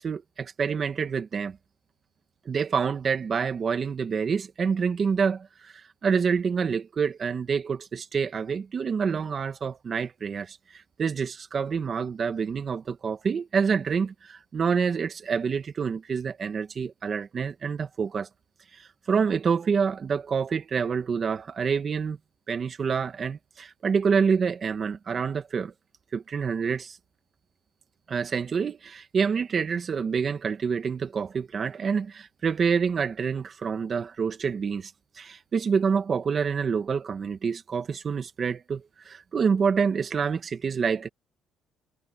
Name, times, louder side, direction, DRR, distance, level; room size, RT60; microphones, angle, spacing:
voice 1, 0.0-1.6 2.4-18.3 18.7-22.2 22.5-25.7 26.1-27.0 28.1-34.9 35.2-41.1, right 6 dB, 35° right, 1.5 m, -27 dB
cardioid pair, 140°, 0 cm